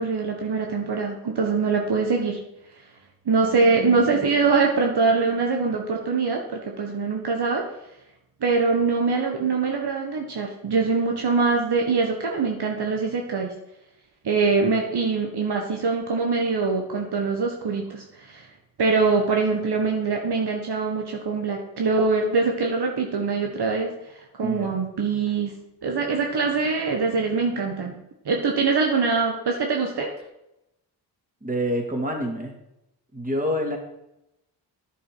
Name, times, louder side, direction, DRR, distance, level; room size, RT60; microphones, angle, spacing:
voice 1, 0.0-2.4 3.2-7.7 8.4-13.5 14.2-18.5 18.8-27.9 28.2-30.1, right 4 dB, 60° right, 2 dB, 1.6 m, -23 dB
voice 2, 24.4-24.7 31.4-32.5 33.1-33.8, equal, 20° right, 1 dB, 3.2 m, -27 dB
10.5 x 7.1 x 5.1 m, 0.86 s
supercardioid pair, 40°, 44 cm